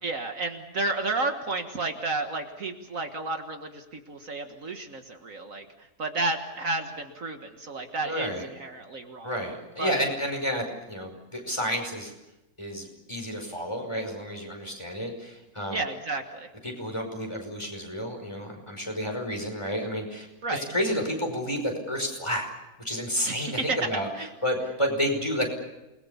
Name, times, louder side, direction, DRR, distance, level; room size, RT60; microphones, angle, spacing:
voice 1, 0.0-9.3 9.8-10.0 15.7-16.5 20.4-20.7 23.2-24.3, right 3 dB, 60° right, 5 dB, 2.0 m, -32 dB
voice 2, 8.0-8.5 9.2-12.1 12.6-15.8 16.6-22.5 22.8-24.1 24.4-25.5, equal, 20° left, 3 dB, 5.4 m, -30 dB
28.5 x 21.0 x 7.0 m, 1.0 s
omnidirectional pair, 1.6 m